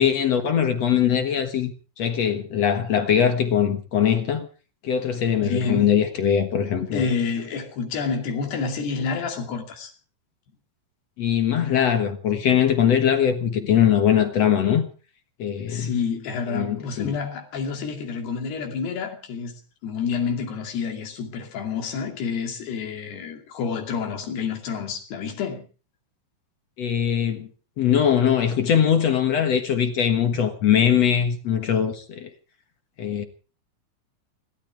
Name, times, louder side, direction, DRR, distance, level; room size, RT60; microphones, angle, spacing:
voice 1, 0.0-4.5 4.8-7.1 11.2-14.9 15.4-16.0 16.5-17.1 26.8-27.5 27.8-32.3 33.0-33.2, left 8 dB, 55° left, 1.9 m, -21 dB
voice 2, 5.4-6.0 6.9-9.9 15.7-19.5 19.8-25.7, left 5 dB, 80° left, 4.6 m, -29 dB
29.5 x 13.0 x 3.5 m
omnidirectional pair, 4.6 m